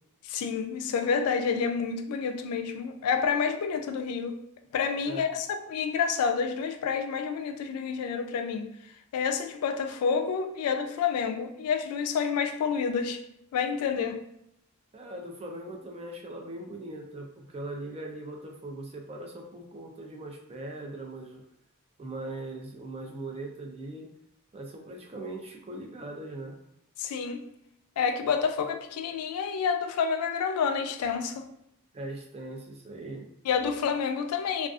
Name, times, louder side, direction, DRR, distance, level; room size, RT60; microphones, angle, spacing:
voice 1, 0.2-4.4 4.7-8.7 9.1-13.2 13.5-14.2 27.0-27.4 28.0-31.5 33.5-34.7, left 6 dB, 85° left, 0.3 m, -29 dB
voice 2, 14.9-21.4 22.0-24.1 24.5-26.6 31.9-33.3, right 2 dB, 25° right, 0.3 m, -40 dB
2.5 x 2.3 x 2.3 m
head